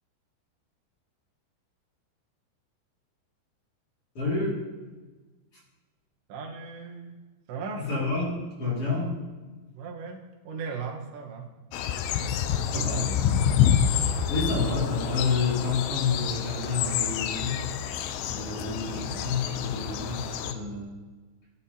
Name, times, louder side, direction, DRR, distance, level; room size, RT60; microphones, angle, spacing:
voice 1, 4.1-4.6 7.8-9.1 12.6-13.3 14.3-17.6 18.3-20.9, left 4 dB, 40° left, -5 dB, 2.8 m, -29 dB
voice 2, 6.3-7.2 7.5-7.9 9.7-11.5 12.5-13.2, right 5 dB, 85° right, 1 dB, 3.6 m, -37 dB
sound 1, 11.7-20.5, left 8 dB, 85° left, 2.8 m, -28 dB
18.0 x 10.5 x 2.8 m, 1.3 s
omnidirectional pair, 4.9 m